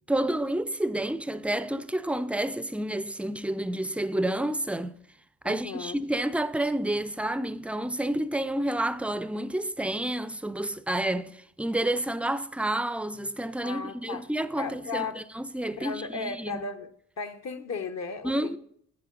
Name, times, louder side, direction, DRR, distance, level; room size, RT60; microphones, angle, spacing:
voice 1, 0.1-4.9 5.4-16.6 18.2-18.6, right 1 dB, 5° right, 0.5 m, -29 dB
voice 2, 5.4-6.0 13.6-14.2 14.5-15.2 15.8-16.9 17.2-18.6, left 4 dB, 50° left, 1.0 m, -35 dB
10.5 x 7.6 x 3.8 m
supercardioid pair, 70°, 34 cm